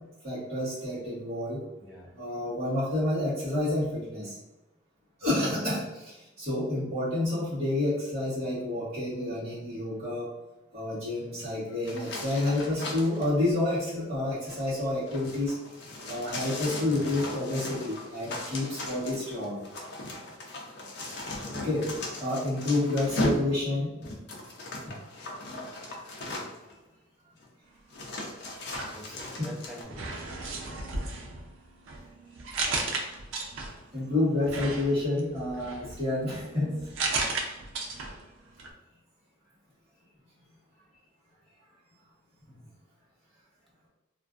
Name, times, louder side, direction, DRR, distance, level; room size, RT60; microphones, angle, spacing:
voice 1, 0.2-1.6 2.2-4.3 5.2-10.3 10.7-15.5 16.1-19.6 21.5-21.9 22.2-23.9 29.0-29.5 33.9-36.8, left 2 dB, 30° right, -12 dB, 1.0 m, -29 dB
voice 2, 1.8-2.1 5.2-5.5 16.8-17.2 21.3-21.7 28.9-30.2, equal, ahead, -4 dB, 0.4 m, -46 dB
sound 1, 11.8-13.3 14.3-26.7 27.4-27.5 27.9-29.8, left 1 dB, 55° left, 0.5 m, -37 dB
sound 2, 28.5-29.5 29.9-33.9 34.4-38.3 38.6-38.7, right 3 dB, 75° right, 0.5 m, -35 dB
2.4 x 2.2 x 2.4 m, 1.0 s
head